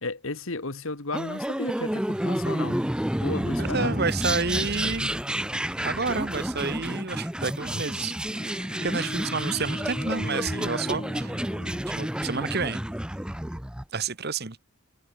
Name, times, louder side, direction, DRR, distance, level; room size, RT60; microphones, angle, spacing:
voice 1, 0.0-2.9 3.2-4.0, left 3 dB, 65° left, 1.7 m, -34 dB
sound 1, 1.1-13.8, right 1 dB, 5° right, 0.6 m, -30 dB
voice 2, 3.6-5.1 5.8-8.1 8.8-11.5 11.9-12.8 13.9-14.6, right 4 dB, 45° right, 1.4 m, -30 dB
Bowed string instrument, 8.2-12.5, left 1 dB, 25° left, 1.2 m, -39 dB
head